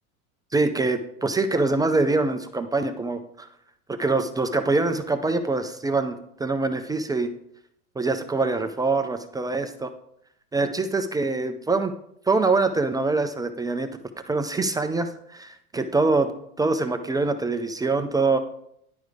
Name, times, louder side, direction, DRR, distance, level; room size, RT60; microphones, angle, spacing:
voice 1, 0.5-3.5 3.9-7.3 8.0-9.9 10.5-11.9 12.3-13.9 14.3-16.3 16.6-18.4, right 3 dB, 10° right, 7 dB, 0.3 m, -24 dB
10.5 x 4.8 x 4.8 m, 0.71 s
hypercardioid pair, 105°, 46 cm